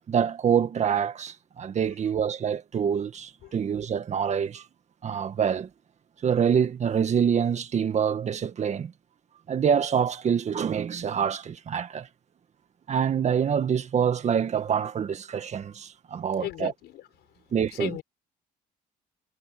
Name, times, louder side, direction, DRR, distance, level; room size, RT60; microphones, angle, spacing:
voice 1, 0.1-4.6 5.0-5.7 6.2-8.9 9.5-12.1 12.9-16.7 17.5-17.9, right 7 dB, 40° right, 1.8 m, -26 dB
voice 2, 16.4-17.3 17.7-18.0, left 14 dB, 75° left, 6.9 m, -37 dB
cardioid pair, 110°, 17 cm